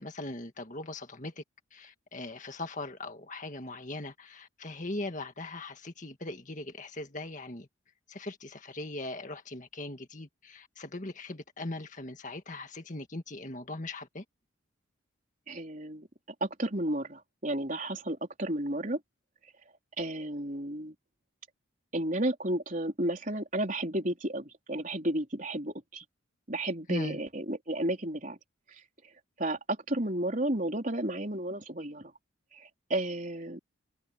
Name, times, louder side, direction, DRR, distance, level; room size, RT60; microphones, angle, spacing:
voice 1, 0.0-1.4 1.7-7.7 8.1-14.2 26.9-27.2, left 2 dB, 40° left, 1.9 m, -40 dB
voice 2, 15.5-16.1 16.4-19.0 20.0-20.9 21.9-26.0 26.5-28.4 29.4-32.1 32.5-33.6, right 1 dB, 40° right, 4.4 m, -32 dB
open air
head